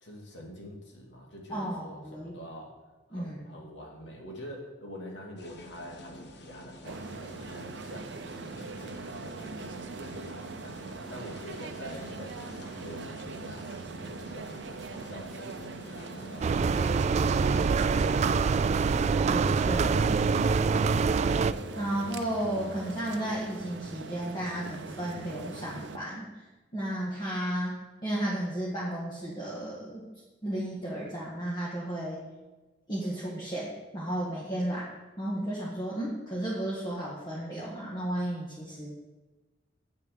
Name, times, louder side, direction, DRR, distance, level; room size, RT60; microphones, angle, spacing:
voice 1, 0.0-2.8 3.1-9.4 9.9-17.7 19.9-21.4, equal, 90° left, 0 dB, 2.4 m, -46 dB
voice 2, 1.5-2.4 3.1-3.7 19.2-20.1 21.7-26.4 26.7-27.8 28.0-30.0 30.4-32.2 32.9-34.9 35.2-38.9, right 1 dB, 25° left, -6 dB, 1.7 m, -33 dB
sound 1, 5.4-18.6, equal, 65° left, 1.2 m, -48 dB
sound 2, 6.8-26.0, right 3 dB, 75° right, 0.6 m, -41 dB
sound 3, 16.4-21.5, right 5 dB, 40° right, 0.3 m, -25 dB
8.1 x 6.5 x 6.7 m, 1.2 s
head